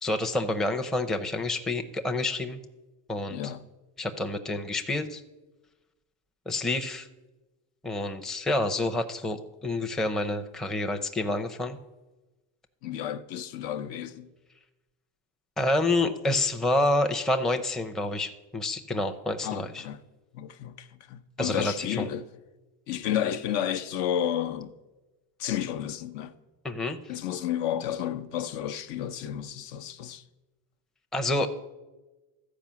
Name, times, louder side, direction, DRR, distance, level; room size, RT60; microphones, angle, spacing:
voice 1, 0.0-2.6 3.1-3.5 4.0-5.2 6.5-7.1 7.8-11.8 15.6-19.9 21.4-22.1 26.6-27.0 31.1-31.5, left 2 dB, ahead, 0.5 m, -28 dB
voice 2, 3.3-3.6 12.8-14.3 19.4-20.0 20.3-22.2 22.9-24.7 25.4-26.3 27.1-30.2, left 10 dB, 70° left, 0.8 m, -31 dB
13.5 x 5.0 x 7.3 m
cardioid pair, 115°, 46 cm